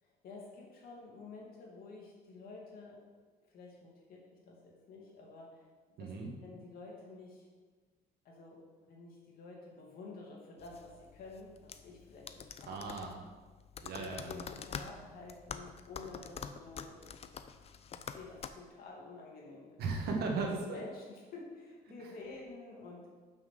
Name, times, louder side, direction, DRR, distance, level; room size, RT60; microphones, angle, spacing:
voice 1, 0.0-3.0 3.5-5.7 6.0-6.1 6.4-7.5 8.2-12.9 13.9-17.1 17.9-19.8 20.7-23.1, left 3 dB, 60° left, -2 dB, 2.6 m, -50 dB
voice 2, 6.0-6.3 12.7-13.2 13.8-14.4 19.8-20.8, right 3 dB, 70° right, 1 dB, 1.8 m, -36 dB
sound 1, 10.6-18.5, left 7 dB, 35° left, 0.5 m, -47 dB
6.1 x 5.8 x 6.7 m, 1.4 s
cardioid pair, 110°, 17 cm